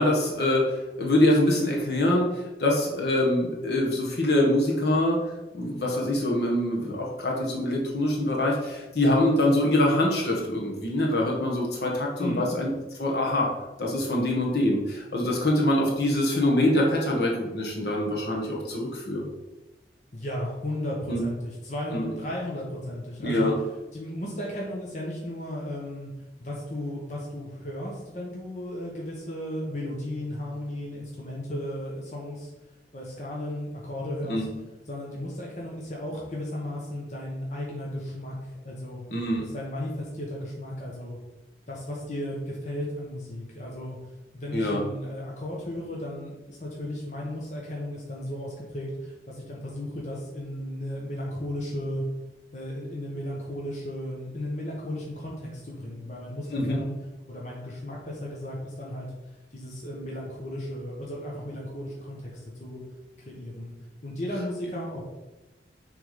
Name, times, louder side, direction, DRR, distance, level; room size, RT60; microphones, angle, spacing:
voice 1, 0.0-12.7 12.9-13.5 13.8-19.3 21.1-21.2 21.9-22.1 23.2-23.5 34.3-34.5 39.1-39.4 44.5-44.8 56.5-56.8, left 1 dB, 65° left, -2 dB, 1.5 m, -24 dB
voice 2, 20.1-23.5 23.9-26.1 26.4-32.5 32.9-34.4 34.9-39.0 39.4-41.2 41.7-44.0 44.3-52.0 52.5-56.9 57.3-59.1 59.5-62.3 62.6-62.8 63.2-63.7 64.0-65.0, left 1 dB, 40° left, -3 dB, 1.1 m, -35 dB
6.5 x 3.6 x 5.1 m, 1.1 s
head